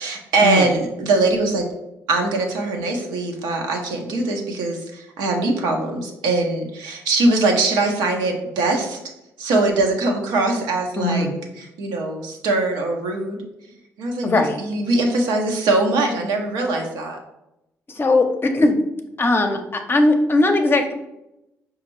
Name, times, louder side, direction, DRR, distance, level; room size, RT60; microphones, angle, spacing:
voice 1, 0.0-1.7 2.1-9.0 9.4-11.3 11.6-13.4 14.0-17.2, right 2 dB, 80° right, 2 dB, 0.7 m, -22 dB
voice 2, 11.0-11.3 14.2-14.6 17.9-18.8 19.2-20.9, left 2 dB, 30° left, 5 dB, 0.6 m, -19 dB
5.0 x 2.3 x 3.1 m, 0.88 s
supercardioid pair, 55°, 7 cm